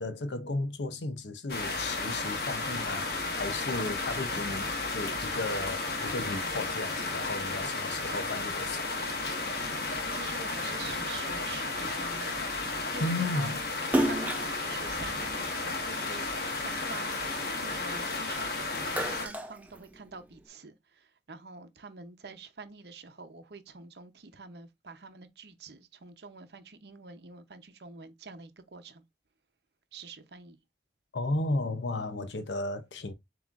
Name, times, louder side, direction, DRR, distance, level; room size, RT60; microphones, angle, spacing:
voice 1, 0.0-3.1 3.3-8.8 13.0-13.6 31.1-33.1, left 2 dB, 85° left, 0.6 m, -34 dB
sound 1, 1.5-19.3, left 3 dB, 60° left, 1.1 m, -33 dB
voice 2, 10.1-12.3 12.9-13.6 14.1-29.0 29.9-30.6, right 4 dB, 70° right, 0.7 m, -46 dB
Splash splatter, 13.8-16.4 16.9-18.3 18.7-20.4, right 1 dB, 10° right, 0.5 m, -32 dB
7.3 x 3.0 x 2.4 m
head